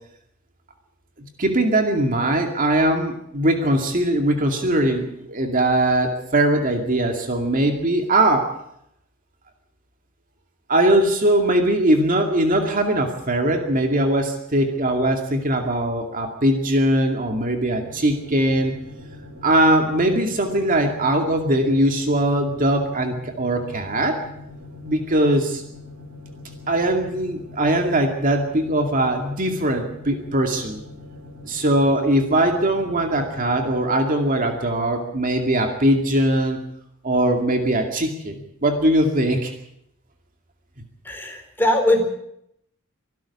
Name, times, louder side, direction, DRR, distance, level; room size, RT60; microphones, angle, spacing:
voice 1, 1.2-8.5 10.7-18.7 19.4-24.2 24.8-25.6 26.7-30.8 31.4-36.6 37.0-39.5, right 1 dB, 40° right, 4 dB, 2.3 m, -21 dB
sound 1, 17.8-33.8, left 2 dB, 85° right, 6.9 m, -42 dB
voice 2, 41.0-42.1, left 1 dB, 10° left, 2 dB, 4.4 m, -20 dB
24.5 x 12.0 x 8.6 m, 0.76 s
head